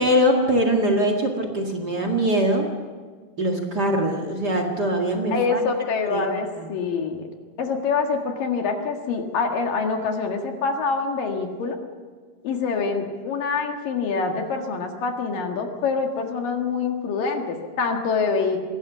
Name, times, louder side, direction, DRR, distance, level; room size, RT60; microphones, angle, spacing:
voice 1, 0.0-2.7 3.4-5.6 6.1-6.7, equal, 35° right, 4 dB, 1.6 m, -22 dB
voice 2, 5.3-7.3 7.6-11.8 12.4-18.6, left 5 dB, 60° left, 3 dB, 3.2 m, -25 dB
24.0 x 17.5 x 7.3 m, 1.6 s
omnidirectional pair, 4.8 m